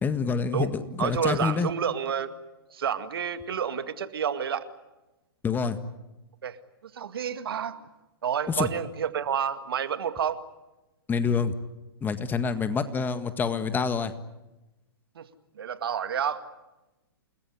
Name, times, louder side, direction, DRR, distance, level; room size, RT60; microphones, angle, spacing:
voice 1, 0.0-1.7 5.4-5.8 8.6-8.7 11.1-11.6 12.0-14.1, left 5 dB, 15° left, 10 dB, 1.7 m, -27 dB
voice 2, 1.0-2.3 2.7-4.7 6.4-6.6 6.9-7.8 8.2-10.4 15.2-15.3 15.6-16.4, right 8 dB, 70° right, 10 dB, 2.1 m, -29 dB
29.0 x 20.0 x 9.6 m, 1.0 s
hypercardioid pair, 120°, 13 cm